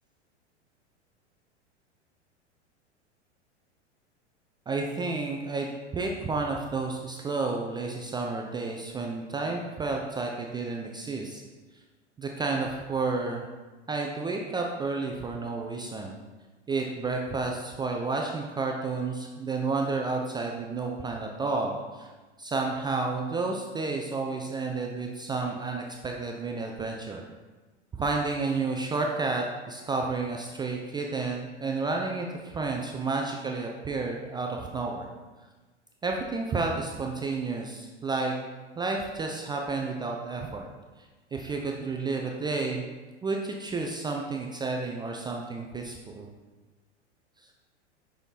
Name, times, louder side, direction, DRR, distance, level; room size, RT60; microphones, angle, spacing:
voice 1, 4.7-11.4 12.2-13.5 13.9-16.2 16.7-22.1 22.4-27.2 27.9-35.1 36.0-38.3 38.8-40.7 41.3-42.8 43.2-46.3, right 3 dB, 10° right, 1 dB, 0.4 m, -31 dB
5.7 x 4.9 x 3.9 m, 1.2 s
hypercardioid pair, 95°, 36 cm